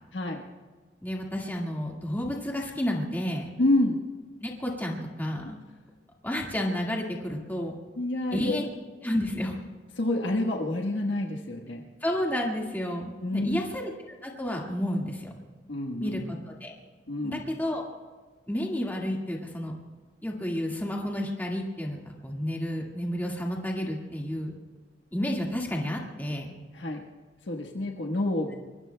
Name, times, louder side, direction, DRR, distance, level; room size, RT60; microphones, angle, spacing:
voice 1, 0.1-0.4 3.6-4.0 8.0-8.6 10.0-11.8 13.2-13.6 15.7-16.2 17.1-17.4 26.7-27.0 27.5-28.5, left 1 dB, 90° left, 1 dB, 1.3 m, -28 dB
voice 2, 1.0-3.5 4.4-5.6 6.2-7.7 8.3-8.6 9.0-9.6 12.0-13.9 14.2-15.3 16.0-16.2 16.5-16.7 17.2-17.8 18.5-19.7 20.2-24.5 25.1-26.6, left 1 dB, 10° left, -1 dB, 1.9 m, -31 dB
25.0 x 22.5 x 2.3 m, 1.4 s
head